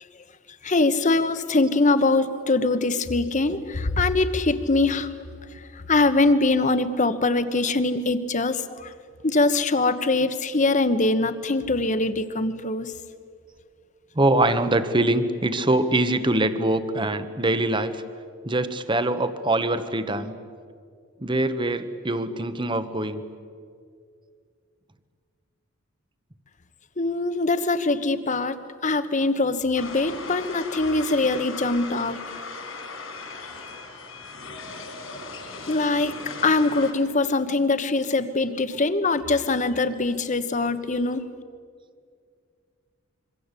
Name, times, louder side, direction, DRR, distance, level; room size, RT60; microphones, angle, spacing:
voice 1, 0.6-5.1 5.9-8.9 9.2-12.9 27.0-28.6 28.8-32.2 35.7-41.3, left 3 dB, 35° left, 11 dB, 1.2 m, -23 dB
voice 2, 14.1-18.0 18.4-20.4 21.2-23.2 38.7-38.8, right 2 dB, 25° right, 10 dB, 1.3 m, -23 dB
sound 1, 29.8-36.9, left 4 dB, 80° left, 5.4 m, -38 dB
26.0 x 24.0 x 8.3 m, 2.2 s
head